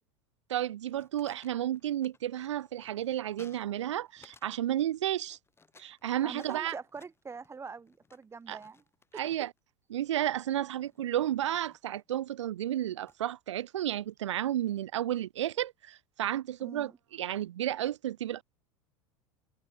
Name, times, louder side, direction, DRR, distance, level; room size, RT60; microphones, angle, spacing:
voice 1, 0.5-5.4 5.8-6.7 8.5-8.6 9.1-9.5 9.9-18.4, right 12 dB, 85° right, 0.7 m, -32 dB
sound 1, 0.6-4.5 4.8-9.6 10.6-12.2 13.1-13.4, left 4 dB, 15° left, 4.8 m, -61 dB
voice 2, 6.2-8.8 9.1-9.2 16.6-17.0, right 5 dB, 15° right, 1.0 m, -44 dB
hypercardioid pair, 95°, 15 cm